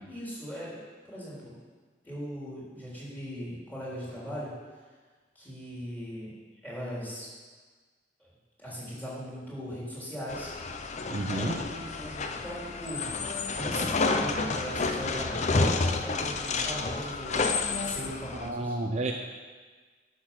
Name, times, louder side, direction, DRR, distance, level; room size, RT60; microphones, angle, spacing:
voice 1, 0.1-0.8 1.0-1.6 2.0-4.5 5.4-6.3 6.6-7.3 8.2-8.3 8.6-10.5 11.2-13.1 13.6-15.4 15.7-17.4 17.8-18.7, equal, 10° left, -7 dB, 3.7 m, -39 dB
sound 1, 10.3-18.5, left 3 dB, 35° left, 0.6 m, -30 dB
voice 2, 11.1-11.6 18.3-19.1, right 2 dB, 35° right, 2 dB, 0.6 m, -30 dB
12.0 x 6.7 x 6.0 m, 1.4 s
head